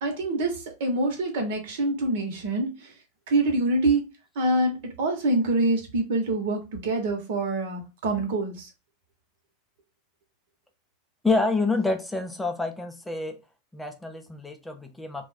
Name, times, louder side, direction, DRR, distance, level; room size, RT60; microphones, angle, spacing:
voice 1, 0.0-2.9 3.3-4.1 4.3-8.7, right 2 dB, 65° right, 1.2 m, -25 dB
voice 2, 11.2-13.4 13.7-15.3, left 3 dB, 5° left, 0.4 m, -27 dB
2.6 x 2.5 x 3.8 m
supercardioid pair, 150°, 0 cm